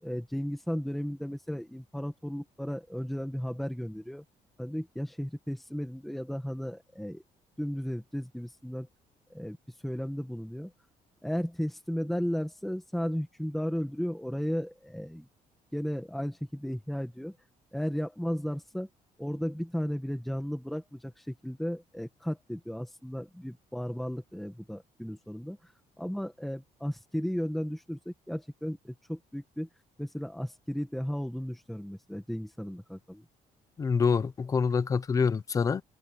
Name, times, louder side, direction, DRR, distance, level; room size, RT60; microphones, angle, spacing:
voice 1, 0.0-4.2 4.6-7.2 7.6-8.9 9.3-9.6 9.8-10.7 11.2-15.3 15.7-17.3 17.7-18.9 19.2-25.7 26.0-29.7 30.0-33.2, equal, ahead, 1.6 m, -34 dB
voice 2, 33.8-35.8, left 5 dB, 20° left, 0.7 m, -26 dB
cardioid pair, 180°, 15 cm